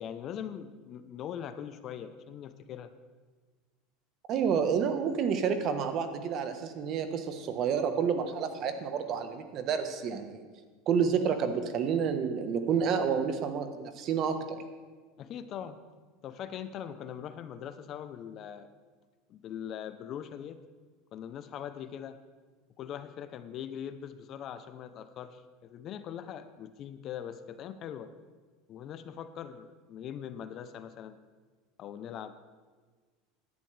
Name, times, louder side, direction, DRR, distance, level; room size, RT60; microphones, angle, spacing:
voice 1, 0.0-2.9 15.2-15.8 16.2-18.7 19.3-20.6 21.1-22.2 22.8-28.1 28.7-31.2 31.8-32.4, left 9 dB, 40° left, 11 dB, 0.7 m, -41 dB
voice 2, 4.3-10.4 10.9-14.6, right 7 dB, 45° right, 8 dB, 1.2 m, -29 dB
16.5 x 11.0 x 3.4 m, 1.4 s
supercardioid pair, 130°, 0 cm